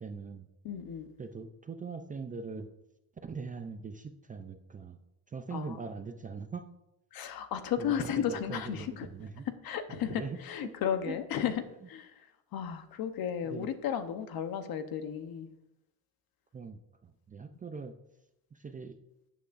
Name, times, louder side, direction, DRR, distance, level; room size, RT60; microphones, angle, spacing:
voice 1, 0.0-0.5 1.2-2.7 3.2-5.0 5.3-6.7 7.8-9.5 9.9-10.7 11.1-11.2 13.5-13.7 16.5-17.9 18.5-19.0, right 5 dB, 20° right, 7 dB, 0.4 m, -41 dB
voice 2, 0.6-1.1 5.5-5.8 7.1-9.1 9.6-12.1 12.5-15.5, left 9 dB, 55° left, 10 dB, 1.0 m, -34 dB
11.5 x 9.1 x 2.6 m, 0.89 s
cardioid pair, 125°, 43 cm